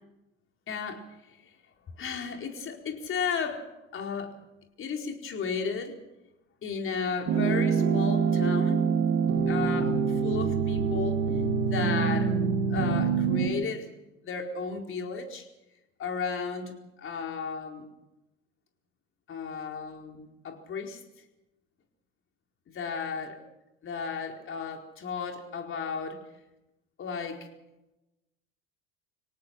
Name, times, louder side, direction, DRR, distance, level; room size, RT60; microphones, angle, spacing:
voice 1, 0.7-1.4 2.0-3.6 3.9-4.3 4.8-6.0 6.6-8.8 9.5-11.2 11.7-12.4 12.7-13.9 14.2-15.5 16.0-17.8 19.3-21.0 22.7-23.4 23.8-26.2 27.0-27.5, left 5 dB, 35° left, 3 dB, 4.4 m, -34 dB
sound 1, 7.3-13.5, right 6 dB, 40° right, 5.0 m, -25 dB
25.0 x 18.0 x 6.3 m, 0.97 s
hypercardioid pair, 85°, 35 cm